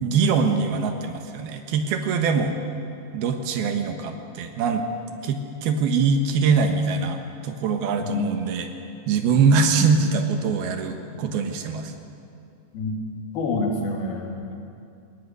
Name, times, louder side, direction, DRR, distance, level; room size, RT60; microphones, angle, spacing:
voice 1, 0.0-2.6 3.1-4.9 5.2-8.7 9.1-11.9, right 5 dB, 85° right, 5 dB, 3.4 m, -23 dB
voice 2, 8.0-8.3 9.7-9.9 12.7-13.0 13.3-14.5, left 3 dB, 85° left, 0 dB, 4.8 m, -27 dB
21.5 x 19.0 x 9.5 m, 2.5 s
omnidirectional pair, 4.3 m